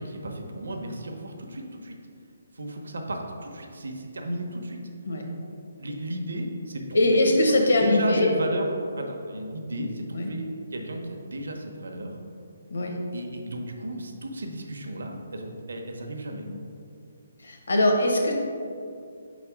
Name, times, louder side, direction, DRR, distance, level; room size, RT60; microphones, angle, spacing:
voice 1, 0.0-2.0 2.5-4.8 5.8-7.2 7.5-12.2 13.1-16.5, right 1 dB, 80° right, 2 dB, 0.8 m, -34 dB
voice 2, 6.9-8.3 10.1-10.3 12.7-13.0 16.4-16.5 17.4-18.3, left 1 dB, 75° left, 1 dB, 1.1 m, -22 dB
5.3 x 4.1 x 4.8 m, 2.5 s
hypercardioid pair, 180°, 0 cm